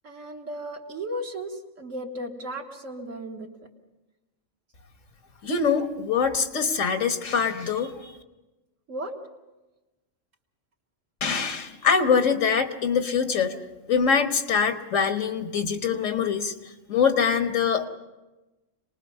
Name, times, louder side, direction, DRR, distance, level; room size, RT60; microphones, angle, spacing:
voice 1, 0.0-3.5 8.9-9.2, right 1 dB, 85° right, 1 dB, 2.3 m, -35 dB
voice 2, 5.4-8.1 11.2-13.6 13.9-17.9, left 6 dB, 80° left, 7 dB, 1.7 m, -24 dB
26.5 x 20.0 x 5.6 m, 1.1 s
omnidirectional pair, 1.3 m